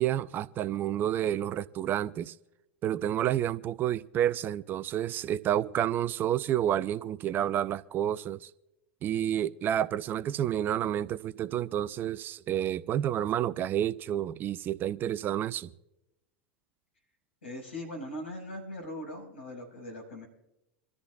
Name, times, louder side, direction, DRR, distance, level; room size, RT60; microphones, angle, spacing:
voice 1, 0.0-2.3 2.8-8.5 9.0-15.7, right 11 dB, 30° right, 0.5 m, -29 dB
voice 2, 17.4-20.3, left 1 dB, 75° left, 5.7 m, -40 dB
27.0 x 13.5 x 2.4 m
figure-of-eight pair, 85°, 6 cm